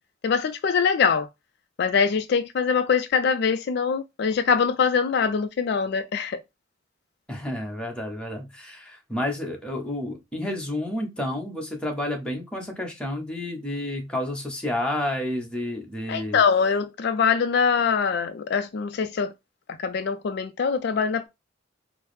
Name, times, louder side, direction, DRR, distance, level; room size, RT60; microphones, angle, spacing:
voice 1, 0.2-1.3 1.8-6.4 16.1-19.3 19.8-21.3, left 6 dB, 55° left, 0.3 m, -23 dB
voice 2, 7.3-16.4, left 1 dB, 5° left, 0.9 m, -30 dB
4.6 x 2.0 x 3.1 m
head